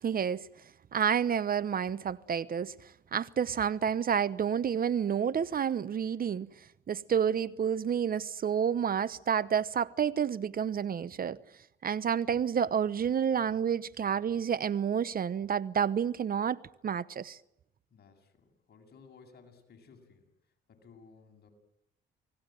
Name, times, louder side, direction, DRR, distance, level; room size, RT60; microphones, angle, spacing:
voice 1, 0.0-0.5 0.9-2.7 3.1-6.5 6.9-11.4 11.8-17.4, right 8 dB, 45° right, 1.0 m, -29 dB
voice 2, 17.9-20.3 20.7-21.5, left 5 dB, 55° left, 7.9 m, -57 dB
29.0 x 20.0 x 9.2 m
cardioid pair, 90°, 20 cm